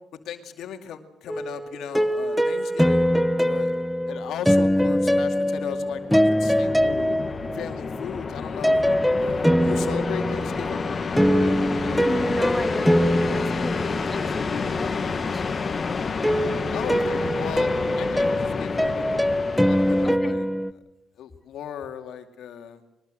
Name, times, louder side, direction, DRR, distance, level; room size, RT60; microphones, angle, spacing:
voice 1, 0.2-3.1 3.4-3.7 4.1-7.1 7.5-10.9 16.7-20.8 21.2-22.8, left 8 dB, 75° left, 6 dB, 2.4 m, -37 dB
sound 1, 1.3-7.9 8.6-14.6 16.2-20.7, equal, ahead, 1.1 m, -23 dB
sound 2, 5.8-20.2, left 4 dB, 35° left, 2.0 m, -29 dB
voice 2, 12.0-15.5 20.0-20.3, left 2 dB, 15° left, 6 dB, 2.3 m, -34 dB
22.5 x 21.0 x 7.8 m, 0.87 s
cardioid pair, 90°, 0 cm